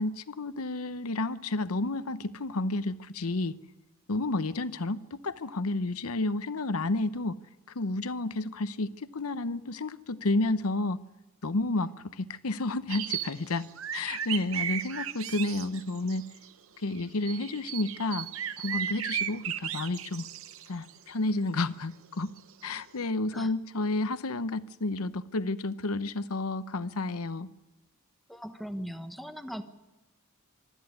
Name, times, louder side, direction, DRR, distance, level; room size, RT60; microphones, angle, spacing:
voice 1, 0.0-3.6 4.1-7.4 7.7-11.0 11.4-13.7 13.9-16.2 16.8-18.3 18.6-20.3 20.7-22.3 22.6-27.5, left 2 dB, 85° left, 13 dB, 0.9 m, -31 dB
sound 1, 12.9-16.5 16.9-21.1 22.4-22.5 22.8-23.0, right 10 dB, 65° right, 0.8 m, -35 dB
voice 2, 28.3-29.6, equal, ahead, 7 dB, 1.1 m, -39 dB
23.5 x 13.5 x 9.7 m, 1.0 s
head